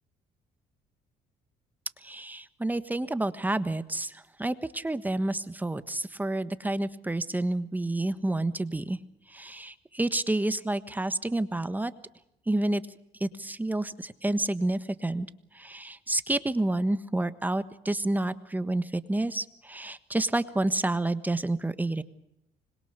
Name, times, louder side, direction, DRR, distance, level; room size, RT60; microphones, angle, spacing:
voice 1, 2.0-9.0 9.3-11.9 12.5-12.8 13.2-15.3 15.5-22.0, right 2 dB, 10° right, 12 dB, 1.3 m, -29 dB
25.5 x 22.0 x 6.8 m, 0.83 s
cardioid pair, 110°, 17 cm